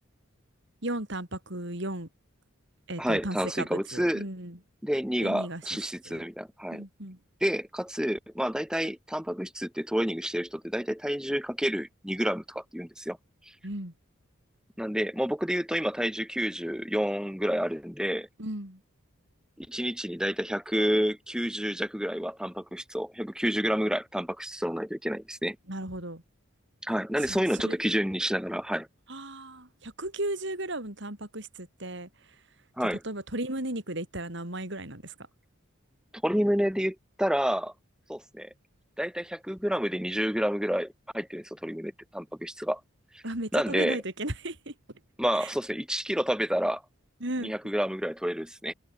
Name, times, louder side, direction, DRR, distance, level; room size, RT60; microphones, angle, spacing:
voice 1, 0.8-2.1 2.9-4.6 5.2-5.6 6.0-6.2 6.7-7.2 13.6-13.9 18.4-18.8 25.7-26.2 27.3-27.8 29.1-32.1 32.8-35.1 43.2-44.7 45.3-45.5 47.2-47.5, right 1 dB, 60° right, 4.7 m, -35 dB
voice 2, 3.0-4.2 4.8-6.8 7.4-13.2 14.8-18.3 19.6-25.6 26.8-28.9 32.8-33.0 36.2-37.7 38.1-38.5 39.0-42.8 43.1-43.2 43.5-44.0 45.2-46.8 47.4-48.7, equal, 5° right, 2.7 m, -29 dB
head